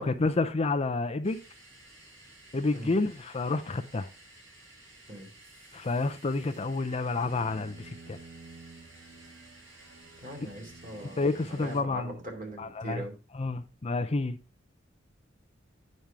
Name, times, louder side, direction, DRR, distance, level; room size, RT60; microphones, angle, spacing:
voice 1, 0.0-1.4 2.5-4.1 5.7-8.2 11.2-12.1 12.6-13.0 13.3-14.4, left 3 dB, 35° left, 0.5 m, -29 dB
sound 1, 1.2-11.8, right 2 dB, 85° right, 4.3 m, -55 dB
voice 2, 2.5-2.9 5.1-5.3 10.2-13.2, right 1 dB, 45° right, 2.7 m, -41 dB
Bowed string instrument, 7.0-12.8, right 3 dB, 60° right, 0.8 m, -52 dB
8.9 x 5.3 x 4.6 m
head